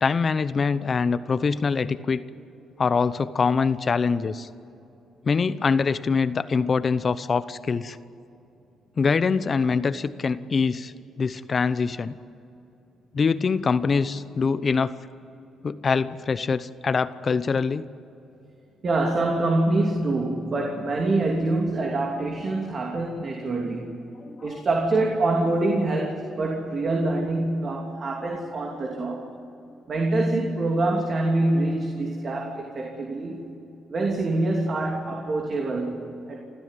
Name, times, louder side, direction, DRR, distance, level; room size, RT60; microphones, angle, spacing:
voice 1, 0.0-2.2 2.8-4.5 5.2-8.0 9.0-12.1 13.1-14.9 15.6-17.9 24.2-24.6, left 5 dB, 40° left, 14 dB, 0.8 m, -24 dB
voice 2, 18.8-23.9 24.4-29.3 29.9-33.5 33.9-36.4, right 2 dB, 45° right, 1 dB, 3.0 m, -25 dB
28.0 x 14.5 x 9.3 m, 2.8 s
cardioid pair, 90°, 0 cm